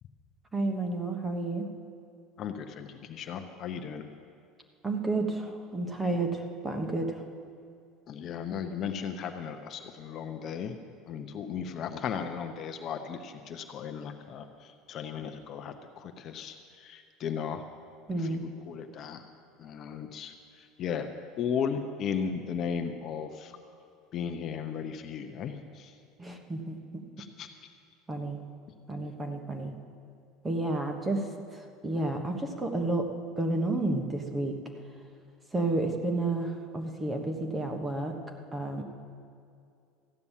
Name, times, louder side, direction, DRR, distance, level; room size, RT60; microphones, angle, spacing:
voice 1, 0.5-1.7 4.8-7.2 18.1-18.4 26.2-27.0 28.1-28.5 28.9-29.8 30.4-33.1 33.4-34.5 35.5-38.2 38.5-38.8, right 2 dB, 15° right, 4 dB, 1.2 m, -31 dB
voice 2, 2.4-4.1 8.1-10.8 11.1-17.6 18.2-19.2 19.6-21.1 21.4-23.5 24.1-25.9 27.2-27.5, left 7 dB, 40° left, 6 dB, 0.8 m, -36 dB
14.5 x 9.6 x 7.3 m, 2.4 s
cardioid pair, 150°, 0 cm